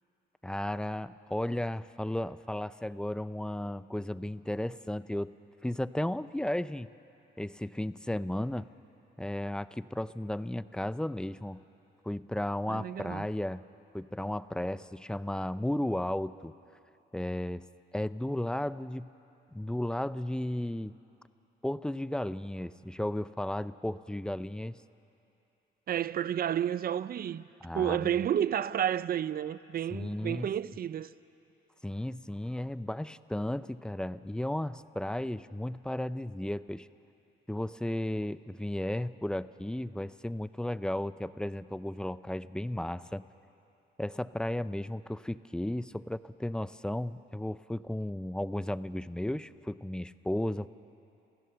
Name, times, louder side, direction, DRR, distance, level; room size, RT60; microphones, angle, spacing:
voice 1, 0.4-5.3 5.6-6.9 7.4-8.7 9.2-11.6 12.0-13.6 13.9-16.5 17.1-17.7 17.9-19.1 19.5-21.0 21.6-24.8 27.6-28.2 29.9-30.5 31.8-36.9 37.5-43.2 44.0-50.7, left 1 dB, 5° left, 0.5 m, -34 dB
voice 2, 12.7-13.3 25.9-27.5 27.7-31.1, right 10 dB, 50° right, 0.5 m, -31 dB
28.5 x 15.5 x 6.9 m
cardioid pair, 90°, 20 cm